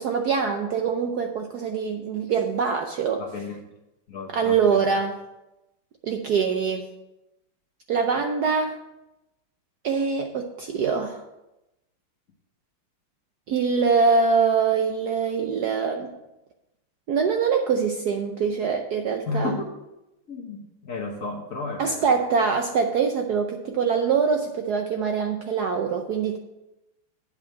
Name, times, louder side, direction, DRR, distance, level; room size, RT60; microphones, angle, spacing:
voice 1, 0.0-3.2 4.3-5.1 6.0-6.9 7.9-8.8 9.8-11.2 13.5-16.1 17.1-19.5 21.8-26.4, right 5 dB, 65° right, 4 dB, 1.0 m, -24 dB
voice 2, 3.2-3.6 4.1-4.8 19.3-19.7 20.3-22.1, left 3 dB, 45° left, 1 dB, 1.3 m, -32 dB
8.5 x 5.1 x 7.6 m, 0.94 s
omnidirectional pair, 2.3 m